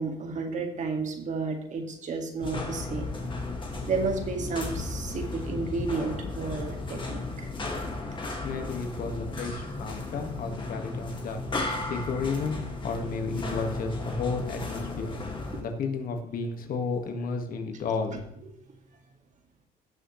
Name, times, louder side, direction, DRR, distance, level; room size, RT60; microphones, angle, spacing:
voice 1, 0.0-3.1 3.9-7.5 15.5-15.6, right 4 dB, 45° right, 4 dB, 2.0 m, -32 dB
sound 1, 2.4-15.6, left 2 dB, 30° left, 2.0 m, -35 dB
voice 2, 8.4-11.4 11.7-15.2 15.5-18.3, left 4 dB, 55° left, 5 dB, 1.7 m, -32 dB
17.5 x 6.6 x 3.2 m, 0.74 s
cardioid pair, 110°, 17 cm